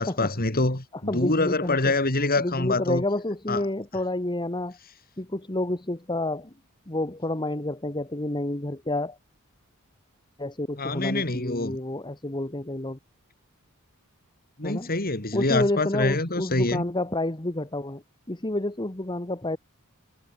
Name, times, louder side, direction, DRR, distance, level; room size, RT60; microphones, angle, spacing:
voice 1, 0.0-3.0 3.5-3.6 10.8-11.8 14.6-16.8, left 2 dB, 40° left, 3.6 m, -25 dB
voice 2, 1.1-1.9 2.4-4.8 5.2-6.5 6.9-9.2 10.4-13.0 14.6-14.9 15.3-18.0 18.3-19.6, left 1 dB, 20° left, 1.6 m, -29 dB
head